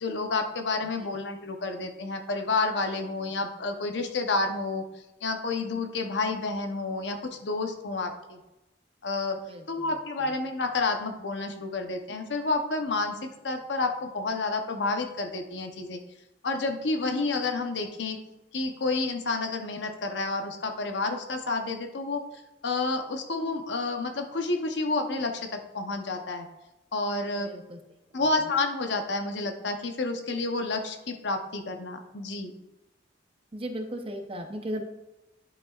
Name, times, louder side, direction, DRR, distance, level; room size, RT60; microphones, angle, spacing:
voice 1, 0.0-8.4 9.0-9.4 9.7-16.0 16.4-18.2 18.5-22.2 22.6-26.5 26.9-27.5 28.1-32.5, left 3 dB, 75° left, 5 dB, 0.8 m, -30 dB
voice 2, 27.4-27.8 33.5-34.8, equal, 30° right, 5 dB, 0.7 m, -36 dB
10.5 x 5.4 x 2.4 m, 0.96 s
head